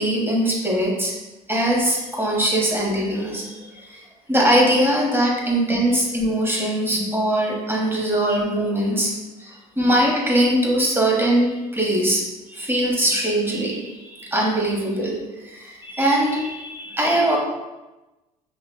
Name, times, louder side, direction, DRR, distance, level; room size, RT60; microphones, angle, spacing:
voice 1, 0.0-1.1 1.5-4.0 4.3-9.1 9.4-12.2 12.5-15.2 15.4-17.4, right 1 dB, 10° right, -3 dB, 1.3 m, -21 dB
5.6 x 2.2 x 2.2 m, 1.1 s
hypercardioid pair, 60°, 19 cm